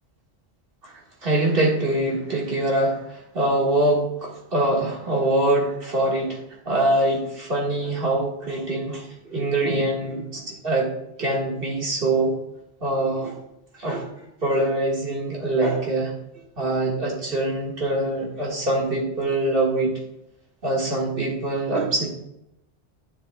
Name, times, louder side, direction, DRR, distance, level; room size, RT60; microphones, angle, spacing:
voice 1, 1.2-6.4 6.7-10.9 11.2-12.4 12.8-13.4 13.7-14.1 14.4-16.1 16.6-19.9 20.6-22.1, right 2 dB, 60° right, -3 dB, 2.0 m, -24 dB
12.0 x 7.0 x 2.3 m, 0.84 s
omnidirectional pair, 1.1 m